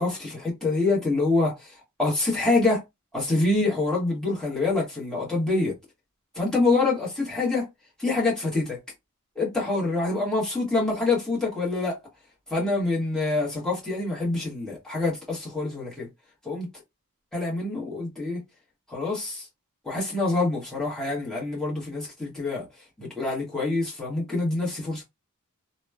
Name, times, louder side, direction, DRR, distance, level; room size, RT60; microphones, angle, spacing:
voice 1, 0.0-2.8 3.1-5.8 6.3-7.7 8.0-8.8 9.3-12.0 12.5-16.1 16.4-16.7 17.3-18.4 18.9-19.5 19.8-22.7 23.0-25.0, left 3 dB, 5° left, 1.0 m, -26 dB
2.9 x 2.1 x 2.2 m
head